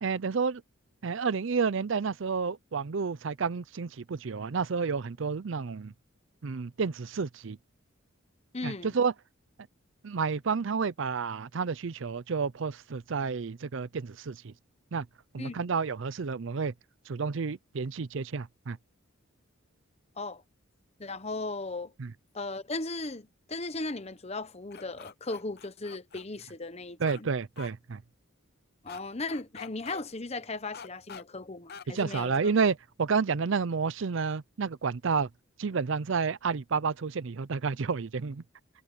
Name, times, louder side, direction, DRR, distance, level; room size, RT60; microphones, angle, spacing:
voice 1, 0.0-0.6 1.0-5.9 6.4-7.6 8.6-9.1 10.0-14.5 14.9-15.1 15.3-16.7 17.1-18.8 22.0-22.1 27.0-28.0 31.9-35.3 35.6-38.4, right 5 dB, 65° right, 0.5 m, -30 dB
voice 2, 8.5-8.9 15.4-15.6 20.2-20.4 21.0-21.9 22.3-27.3 28.8-32.3, left 2 dB, 30° left, 1.1 m, -37 dB
sound 1, 24.7-26.2 27.1-27.2 27.6-27.7 28.9-29.0 29.3-30.0 30.7-31.2 31.7-31.8 32.1-32.3, left 6 dB, 50° left, 0.7 m, -45 dB
head